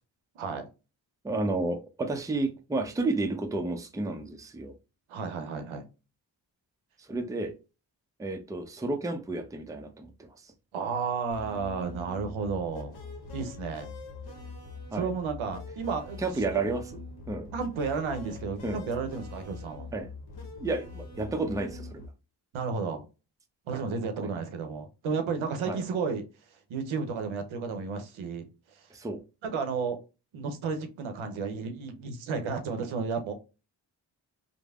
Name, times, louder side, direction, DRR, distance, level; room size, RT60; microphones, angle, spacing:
voice 1, 0.4-0.7 5.1-5.8 10.7-12.9 13.3-13.9 14.9-16.4 17.5-19.9 22.5-23.1 23.7-26.2 26.7-28.9 29.4-30.0 30.3-33.3, right 5 dB, 80° right, 0.7 m, -32 dB
voice 2, 1.2-4.7 7.1-7.6 8.2-10.3 14.9-15.1 16.2-16.8 17.3-17.5 18.6-18.8 19.9-20.1 20.6-22.0 24.2-24.4 25.7-25.8 28.9-29.2, right 2 dB, 5° right, 0.5 m, -31 dB
sound 1, 11.3-22.1, left 3 dB, 50° left, 0.9 m, -43 dB
3.3 x 2.0 x 2.3 m
supercardioid pair, 40°, 48 cm